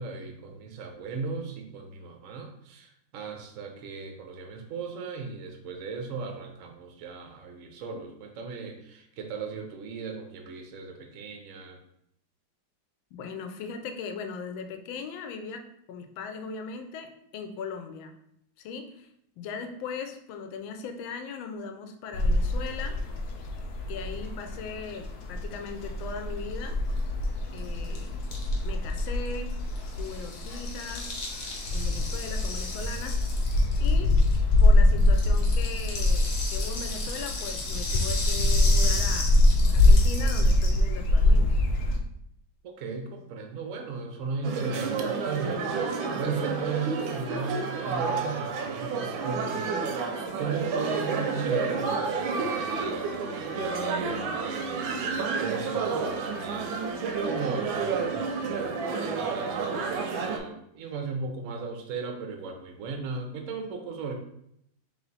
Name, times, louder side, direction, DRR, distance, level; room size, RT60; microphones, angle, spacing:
voice 1, 0.0-11.8 42.6-49.8 50.4-56.7 57.2-64.1, right 4 dB, 75° right, 4 dB, 0.7 m, -36 dB
voice 2, 13.1-18.1 18.6-19.1 19.4-23.0 23.9-26.8 27.5-28.2 28.6-29.6 30.0-31.1 31.7-33.2 33.8-34.1 34.6-39.4 39.7-41.6, left 5 dB, 85° left, 6 dB, 1.4 m, -39 dB
sound 1, 22.1-42.0, left 2 dB, 70° left, 1.0 m, -24 dB
Rattle (instrument), 27.0-27.1 27.2-27.3 27.5-34.7 35.0-40.8, left 2 dB, 50° left, 1.1 m, -36 dB
sound 2, 44.4-60.4, right 4 dB, 90° right, 1.4 m, -30 dB
3.3 x 3.1 x 3.9 m, 0.73 s
omnidirectional pair, 2.1 m